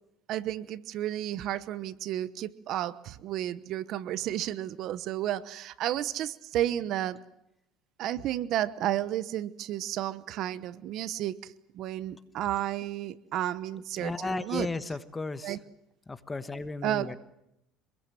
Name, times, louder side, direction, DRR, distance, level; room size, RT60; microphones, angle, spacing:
voice 1, 0.3-7.2 8.0-14.7 15.4-15.6 16.8-17.2, right 12 dB, 55° right, 15 dB, 1.0 m, -32 dB
voice 2, 14.0-15.6 16.1-17.2, left 3 dB, 15° left, 11 dB, 1.3 m, -35 dB
26.5 x 21.5 x 7.6 m, 0.85 s
cardioid pair, 130°, 0 cm